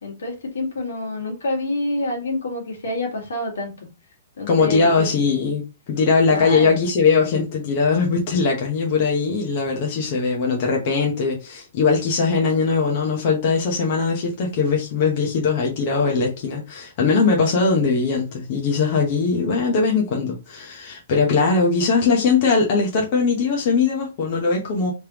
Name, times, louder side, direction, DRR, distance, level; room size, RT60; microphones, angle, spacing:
voice 1, 0.0-3.9 4.4-5.1 6.3-6.8, left 2 dB, 85° left, 1.8 m, -27 dB
voice 2, 4.5-24.9, left 4 dB, 35° left, 0.9 m, -20 dB
3.4 x 3.3 x 3.0 m
hypercardioid pair, 170°, 0 cm